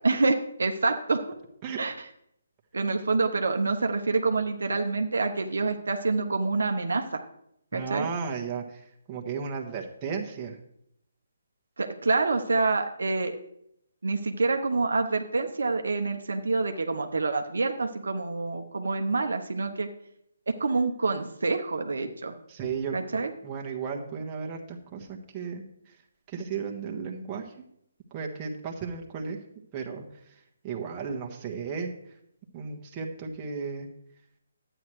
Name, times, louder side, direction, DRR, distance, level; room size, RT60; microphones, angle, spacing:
voice 1, 0.0-1.4 1.8-2.1 2.7-7.2 7.7-8.1 11.8-13.4 14.0-19.9 20.5-22.4 22.9-23.3, right 3 dB, 70° right, 6 dB, 0.9 m, -27 dB
voice 2, 7.7-10.5 22.5-23.0 23.4-25.6 26.3-27.5 28.1-29.4 29.7-30.0 30.6-31.9 32.5-33.9, right 5 dB, 20° right, 0 dB, 1.4 m, -34 dB
12.0 x 9.0 x 3.2 m, 0.75 s
figure-of-eight pair, 145°, 0 cm